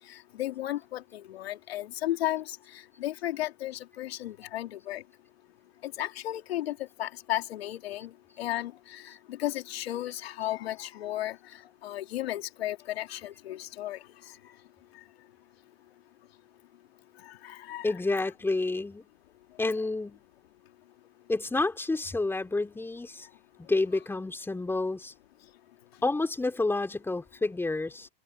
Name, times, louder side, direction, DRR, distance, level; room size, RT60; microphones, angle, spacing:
voice 1, 0.1-5.0 5.8-8.1 8.4-11.4 11.8-14.0 17.4-18.0, left 14 dB, 70° left, 2.9 m, -34 dB
voice 2, 17.8-19.1 19.6-20.2 21.3-23.3 23.7-25.1 26.0-28.1, left 2 dB, 5° left, 3.8 m, -29 dB
hypercardioid pair, 115°, 32 cm